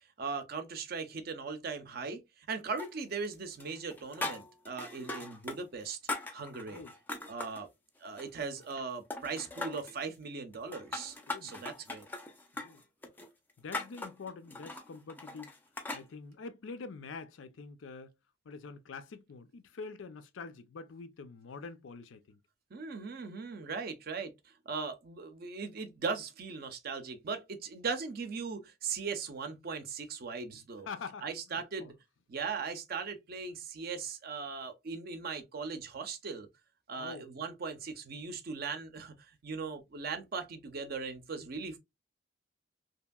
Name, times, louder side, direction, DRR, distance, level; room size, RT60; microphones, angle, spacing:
voice 1, 0.2-6.0 6.3-6.8 7.3-7.7 8.0-11.2 11.4-12.1 22.7-30.9 31.2-31.9 32.3-36.5 36.9-41.8, right 5 dB, 50° right, 0.5 m, -39 dB
sound 1, 2.8-3.3 3.6-5.6 5.8-7.6 8.0-8.8 9.1-10.0 10.5-16.1, left 2 dB, 10° left, 0.4 m, -41 dB
voice 2, 11.3-11.6 12.5-12.8 13.6-15.5 15.9-18.1 18.4-22.4 30.9-31.9 37.0-37.3, left 4 dB, 85° left, 0.5 m, -46 dB
2.8 x 2.6 x 2.2 m
head